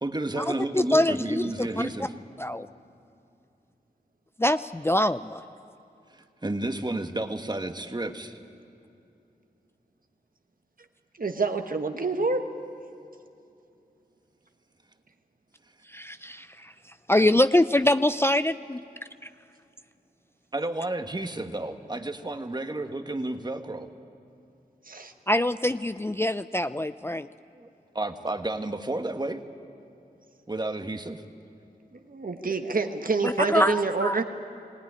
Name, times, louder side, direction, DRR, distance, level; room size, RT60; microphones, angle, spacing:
voice 1, 0.0-2.1 6.1-8.4 20.5-23.9 27.6-27.7 27.9-29.4 30.5-31.2, right 2 dB, 25° right, 7 dB, 1.3 m, -31 dB
voice 2, 0.7-2.1 2.4-2.7 4.4-5.4 15.9-16.7 17.1-18.8 25.3-27.3 33.2-34.2, left 1 dB, 15° left, 12 dB, 0.4 m, -24 dB
voice 3, 11.2-12.4 24.9-25.1 31.9-34.2, right 3 dB, 60° right, 6 dB, 1.4 m, -27 dB
20.0 x 17.0 x 9.9 m, 2.6 s
cardioid pair, 45°, 16 cm